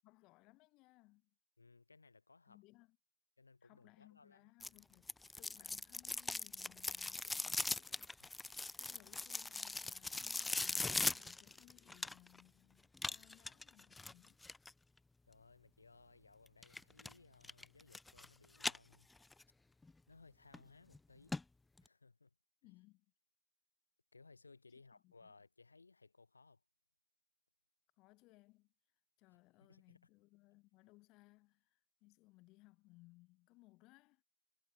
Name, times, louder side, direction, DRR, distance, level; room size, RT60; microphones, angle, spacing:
voice 1, 0.0-1.3 2.4-3.0 3.6-8.4 8.8-14.4 22.6-23.1 25.0-25.3 28.0-28.7 29.2-34.2, left 22 dB, 20° left, 6.1 m, -66 dB
voice 2, 1.6-2.6 3.4-4.5 8.2-8.3 13.0-13.2 15.2-19.1 20.1-21.3 21.8-22.3 22.6-22.7 24.1-26.6 29.3-30.0, left 4 dB, 70° left, 6.1 m, -63 dB
sound 1, 4.6-12.4 13.0-14.7 16.6-17.1 17.4-18.3 18.6-19.4 19.8-19.9 20.5-20.6 20.9-21.0 21.3-21.4 21.8-21.9, left 3 dB, 5° left, 0.6 m, -40 dB
figure-of-eight pair, 135°, 0 cm